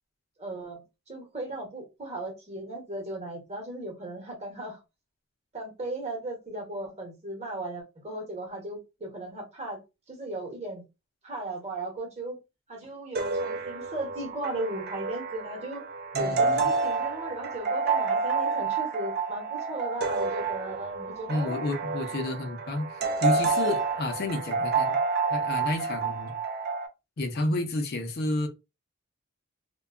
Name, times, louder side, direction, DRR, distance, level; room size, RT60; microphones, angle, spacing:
voice 1, 0.4-4.8 5.5-9.8 10.1-10.8 11.2-12.4 12.7-15.8 16.2-21.6, right 2 dB, 35° right, 0.9 m, -36 dB
sound 1, 13.1-26.9, right 4 dB, 50° right, 0.4 m, -29 dB
voice 2, 16.1-16.7 21.3-25.0 25.3-26.3 27.2-28.5, left 2 dB, 50° left, 0.5 m, -30 dB
2.6 x 2.2 x 2.3 m
head